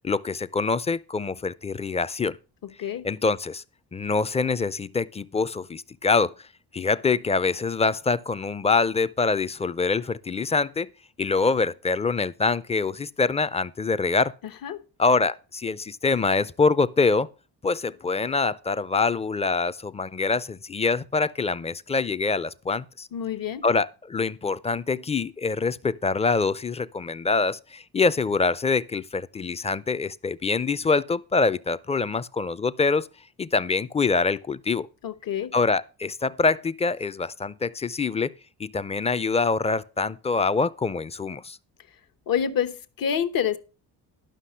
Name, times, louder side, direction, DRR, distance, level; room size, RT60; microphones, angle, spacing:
voice 1, 0.0-2.4 3.0-3.6 3.9-6.3 6.7-10.9 11.2-14.3 15.0-17.3 17.6-23.1 23.6-33.1 33.4-34.9 35.5-38.3 38.6-41.6, left 4 dB, 15° left, 0.4 m, -25 dB
voice 2, 2.6-3.0 14.6-14.8 23.1-23.6 35.0-35.5 42.3-43.6, left 8 dB, 60° left, 1.0 m, -27 dB
11.5 x 5.8 x 5.6 m
cardioid pair, 90°, 39 cm